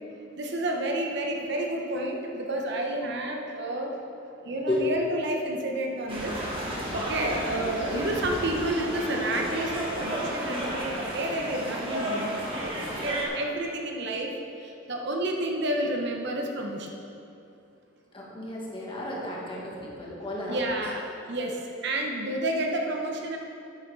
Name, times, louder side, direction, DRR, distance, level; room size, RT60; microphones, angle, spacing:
voice 1, 0.4-4.0 4.4-6.3 6.9-14.3 14.6-16.9 20.5-23.4, right 1 dB, 65° right, 1 dB, 0.9 m, -30 dB
sound 1, 6.1-13.3, right 1 dB, 30° right, 1.5 m, -32 dB
voice 2, 18.1-20.6, left 1 dB, 30° left, -4 dB, 1.6 m, -33 dB
9.6 x 6.3 x 4.8 m, 2.6 s
head